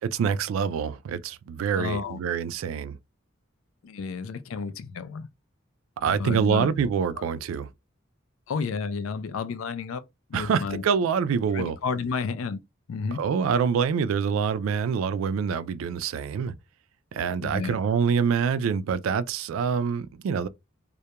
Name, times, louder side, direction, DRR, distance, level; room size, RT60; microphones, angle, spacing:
voice 1, 0.1-3.0 6.0-7.7 10.3-11.8 13.1-16.5 17.1-20.5, right 6 dB, 80° right, 0.3 m, -26 dB
voice 2, 1.8-2.2 3.8-5.3 6.0-6.7 7.2-7.3 8.5-10.0 10.3-10.8 11.5-12.6 12.9-13.2 17.4-17.8, left 5 dB, 80° left, 0.4 m, -31 dB
2.3 x 2.1 x 2.8 m
head